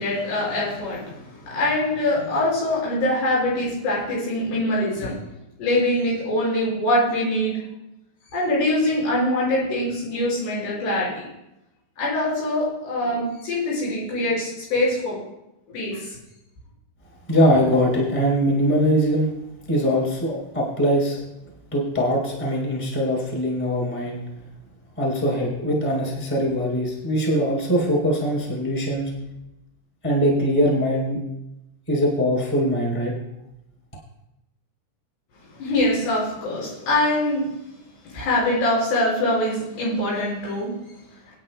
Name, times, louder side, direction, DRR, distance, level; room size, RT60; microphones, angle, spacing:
voice 1, 0.0-5.1 5.6-7.6 8.3-11.2 12.0-15.2 15.7-16.2 35.5-37.5 38.0-40.7, left 1 dB, 65° left, -6 dB, 7.4 m, -23 dB
voice 2, 17.3-19.3 19.7-21.2 21.7-24.2 25.0-29.1 30.0-31.2 31.9-33.1, equal, 5° left, -3 dB, 2.8 m, -22 dB
25.0 x 10.0 x 2.3 m, 0.88 s
omnidirectional pair, 5.2 m